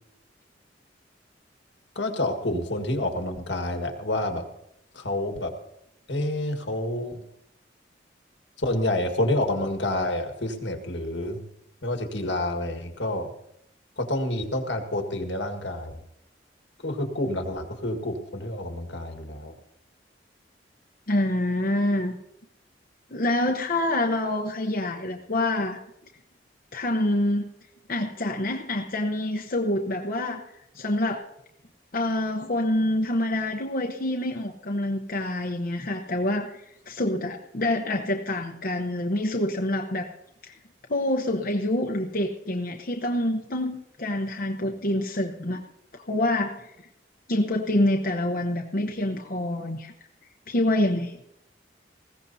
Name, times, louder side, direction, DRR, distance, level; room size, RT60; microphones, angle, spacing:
voice 1, 1.9-4.4 4.9-5.5 6.1-7.2 8.6-11.4 11.8-13.3 14.0-16.0 16.8-19.6, left 1 dB, 75° left, 5 dB, 1.7 m, -28 dB
voice 2, 21.1-22.2 23.1-25.8 26.7-27.5 27.9-30.4 30.7-31.2 31.9-40.1 40.5-40.6 40.9-45.6 46.1-46.7 47.3-49.9 50.5-51.1, left 1 dB, 50° left, 0 dB, 0.9 m, -26 dB
20.0 x 16.0 x 2.8 m, 0.78 s
head